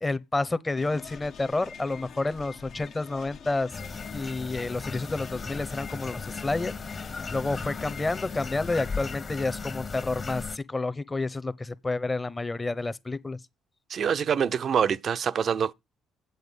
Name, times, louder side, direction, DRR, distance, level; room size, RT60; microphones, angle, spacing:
voice 1, 0.0-3.7 4.1-6.7 7.3-13.4, left 2 dB, 20° left, 0.8 m, -30 dB
sound 1, 0.8-9.2, left 6 dB, 65° left, 0.9 m, -46 dB
sound 2, 3.7-10.6, left 4 dB, 40° left, 1.3 m, -36 dB
voice 2, 13.9-15.7, right 7 dB, 55° right, 0.5 m, -25 dB
8.1 x 7.8 x 5.4 m
supercardioid pair, 60°, 0 cm